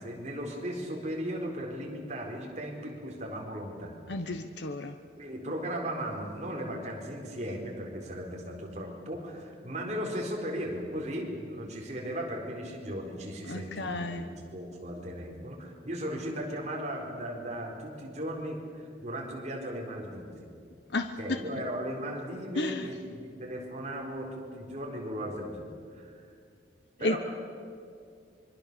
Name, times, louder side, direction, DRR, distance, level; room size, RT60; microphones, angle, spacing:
voice 1, 0.0-4.3 5.2-20.4 21.2-26.3 27.0-27.2, equal, 40° right, 0 dB, 4.2 m, -37 dB
voice 2, 4.1-5.0 13.5-14.3 20.9-21.4 22.6-22.9 27.0-27.2, left 2 dB, 70° left, 7 dB, 1.0 m, -32 dB
25.0 x 24.0 x 6.9 m, 2.3 s
head